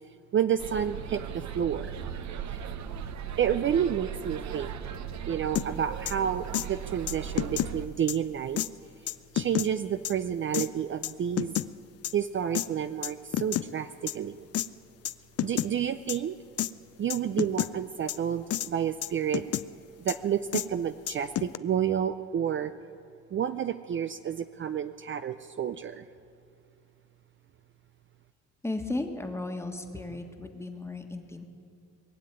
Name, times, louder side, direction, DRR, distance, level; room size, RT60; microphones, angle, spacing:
voice 1, 0.3-1.9 2.5-2.6 3.4-4.7 5.3-8.6 9.3-11.6 12.1-14.5 15.4-16.4 17.0-19.4 20.0-22.7 23.3-26.0, right 9 dB, 40° right, 10 dB, 0.5 m, -30 dB
sound 1, 0.6-7.9, right 8 dB, 65° right, 0.9 m, -38 dB
sound 2, 5.6-5.7 6.1-6.2 6.5-6.7 7.1-7.7 8.1-8.2 8.6-8.7 9.1-9.7 10.0-10.1 10.5-10.7 11.0-11.7 12.0-12.1 12.5-12.7 13.0-13.7 14.1-14.2 14.5-14.7 15.1-15.2 15.4-15.7 16.1-16.2 16.6-16.7 17.1-17.7 18.1-18.2 18.5-18.7 19.0-19.7 20.1-20.2 20.5-20.7 21.1-21.6, left 12 dB, 55° left, 0.5 m, -29 dB
voice 2, 28.6-31.5, left 2 dB, 10° left, 5 dB, 1.5 m, -35 dB
21.0 x 7.5 x 9.1 m, 2.5 s
cardioid pair, 90°, 30 cm